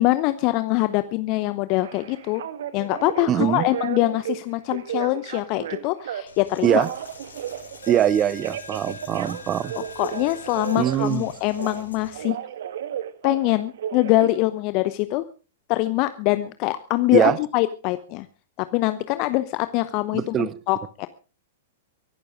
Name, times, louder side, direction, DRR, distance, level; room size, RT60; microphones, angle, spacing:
voice 1, 0.0-2.4 2.7-6.9 9.8-12.4 13.2-15.2 15.7-18.3 18.6-21.1, left 18 dB, 40° left, 13 dB, 0.8 m, -23 dB
Telephone, 1.8-4.4 4.7-6.2 6.5-8.1 8.4-11.9 12.1-14.3, right 10 dB, 60° right, 1.5 m, -33 dB
voice 2, 3.3-3.6 6.6-6.9 7.9-9.7 10.8-11.2 17.1-17.4 20.1-20.5, right 10 dB, 25° right, 19 dB, 0.9 m, -22 dB
Coin (dropping), 6.3-12.3, left 4 dB, 75° left, 3.7 m, -44 dB
23.5 x 12.0 x 3.7 m, 0.36 s
figure-of-eight pair, 100°, 0 cm